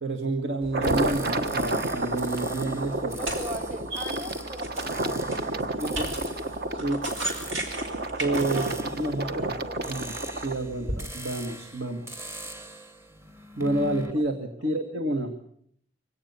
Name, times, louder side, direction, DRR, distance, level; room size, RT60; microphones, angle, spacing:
voice 1, 0.0-3.2 5.8-6.1 6.7-7.1 8.2-9.6 9.9-12.2 13.6-15.3, right 2 dB, 70° right, 4 dB, 1.9 m, -29 dB
egg crack, 0.6-11.0, right 1 dB, 90° right, 5.0 m, -37 dB
sound 1, 0.7-10.6, right 2 dB, 55° right, 1.3 m, -31 dB
sound 2, 0.8-14.1, equal, 15° right, 1.0 m, -42 dB
voice 2, 3.1-6.2 8.4-8.8 9.0-10.0 14.6-14.7, right 1 dB, 40° right, 6 dB, 3.0 m, -40 dB
25.0 x 17.5 x 7.0 m, 0.66 s
head